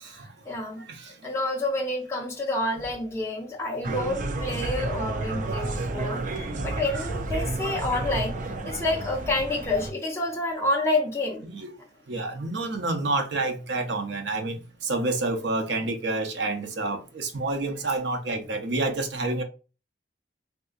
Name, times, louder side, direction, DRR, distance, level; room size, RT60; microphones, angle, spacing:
voice 1, 0.5-0.8 1.2-8.4 8.6-11.5, left 2 dB, 15° left, 0.7 m, -28 dB
sound 1, 3.8-9.9, right 2 dB, 45° right, 0.5 m, -31 dB
voice 2, 12.1-19.4, right 2 dB, 85° right, 0.7 m, -29 dB
3.6 x 2.7 x 2.4 m
head